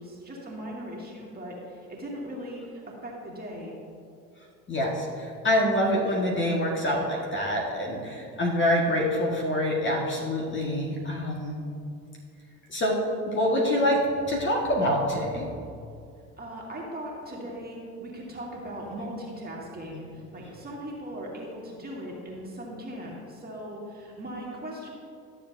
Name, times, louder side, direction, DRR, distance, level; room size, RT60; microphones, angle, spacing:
voice 1, 0.0-3.8 16.4-20.1 20.3-24.9, equal, 20° right, -3 dB, 2.2 m, -39 dB
voice 2, 4.7-11.6 12.7-13.0 13.3-14.0 14.3-15.5, left 1 dB, 25° left, -2 dB, 1.7 m, -26 dB
13.0 x 7.0 x 2.7 m, 2.3 s
hypercardioid pair, 70°, 43 cm